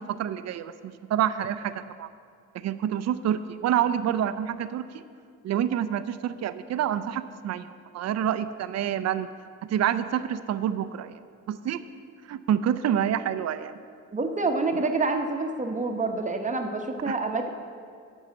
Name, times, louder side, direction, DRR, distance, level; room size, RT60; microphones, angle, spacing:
voice 1, 0.0-2.1 2.5-5.0 5.4-7.7 7.9-9.3 9.7-11.1 11.5-11.8 12.3-13.8 17.1-17.2, right 10 dB, 60° right, 13 dB, 0.5 m, -27 dB
voice 2, 14.1-17.5, right 3 dB, 25° right, 5 dB, 0.9 m, -27 dB
9.2 x 5.5 x 7.6 m, 2.3 s
cardioid pair, 90°, 30 cm